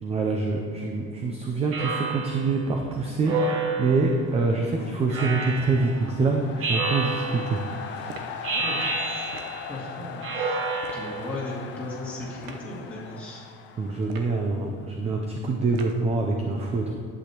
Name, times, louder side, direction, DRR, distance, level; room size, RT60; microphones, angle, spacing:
voice 1, 0.0-8.1 13.8-16.9, right 3 dB, 20° right, 2 dB, 0.4 m, -26 dB
Speech synthesizer, 1.7-2.5 3.2-4.1 5.1-5.9 6.6-7.6 8.4-9.7 10.2-11.3, right 3 dB, 45° right, 1.2 m, -29 dB
sound 1, 3.1-15.1, left 6 dB, 40° left, 0.5 m, -41 dB
sound 2, 8.1-8.4 9.3-9.6 10.8-11.1 12.4-12.7 14.0-14.4 15.7-16.1, right 5 dB, 70° right, 0.9 m, -42 dB
voice 2, 8.5-9.4 9.7-13.4, left 1 dB, 5° left, -8 dB, 2.4 m, -37 dB
11.0 x 8.3 x 2.9 m, 2.1 s
cardioid pair, 170°, 30 cm